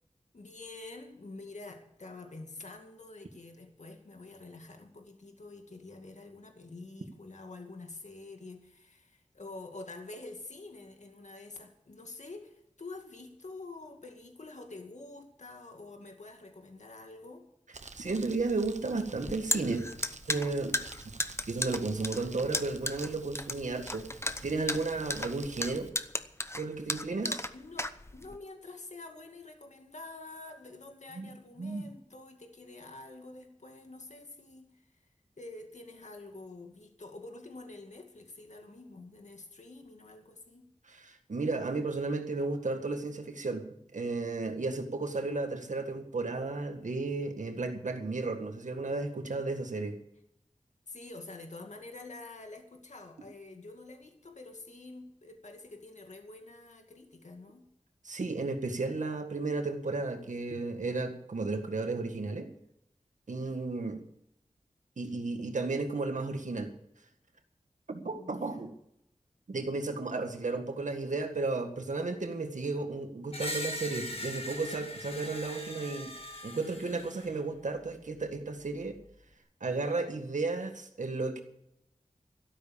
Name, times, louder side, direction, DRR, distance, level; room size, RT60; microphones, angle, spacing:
voice 1, 0.3-17.5 26.8-34.9 35.4-40.7 50.9-57.7 63.3-63.8 68.1-68.6, left 2 dB, 70° left, 2.2 m, -47 dB
Crumpling crinkling, 17.7-25.9, right 4 dB, 70° right, 1.1 m, -49 dB
voice 2, 18.0-19.9 20.3-20.8 21.5-24.1 24.4-25.9 26.6-27.4 31.2-31.3 31.6-31.8 40.9-50.0 58.0-62.5 63.3-64.0 65.0-66.7 67.9-68.7 69.5-76.1 76.4-79.0 79.6-81.4, right 3 dB, 85° right, 1.9 m, -33 dB
sound 1, 19.2-28.4, left 1 dB, 20° left, 0.9 m, -34 dB
Screech, 73.3-77.3, left 1 dB, 50° left, 2.3 m, -40 dB
13.0 x 12.5 x 7.0 m
wide cardioid pair, 60°, 12 cm